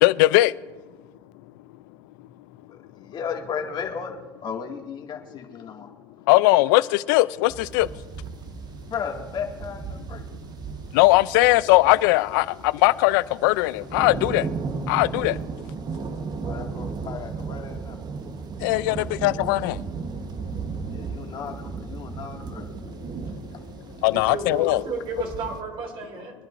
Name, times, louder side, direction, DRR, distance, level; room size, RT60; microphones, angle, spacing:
voice 1, 0.0-0.5 6.3-7.9 10.9-14.5 14.9-15.4 18.6-19.8 22.8-22.9 23.9-24.8, left 19 dB, 80° left, 0.4 m, -19 dB
voice 2, 2.7-5.9 8.9-10.2 16.5-18.0 20.9-22.7 23.5-23.6, left 6 dB, 45° left, 2.1 m, -35 dB
sound 1, 7.5-25.6, right 5 dB, 40° right, 1.2 m, -35 dB
voice 3, 24.1-26.3, right 4 dB, 60° right, 3.2 m, -33 dB
24.5 x 10.5 x 2.6 m
supercardioid pair, 80°, 11 cm